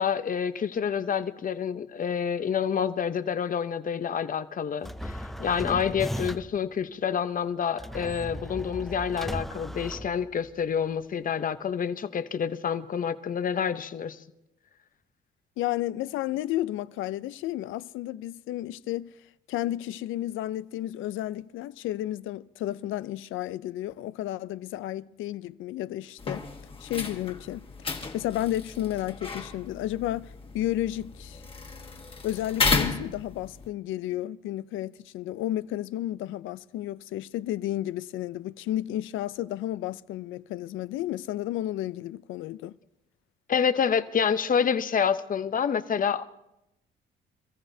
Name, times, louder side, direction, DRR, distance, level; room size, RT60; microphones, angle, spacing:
voice 1, 0.0-14.2 43.5-46.2, left 7 dB, 45° left, 0.8 m, -28 dB
sound 1, 4.8-6.7 7.8-10.6, equal, ahead, 0.5 m, -36 dB
voice 2, 15.6-26.4 26.8-27.7 28.1-31.4 32.2-42.8, left 14 dB, 85° left, 0.4 m, -32 dB
sound 2, 26.2-33.7, left 4 dB, 25° left, 1.4 m, -33 dB
26.5 x 14.5 x 2.7 m
cardioid pair, 90°, 20 cm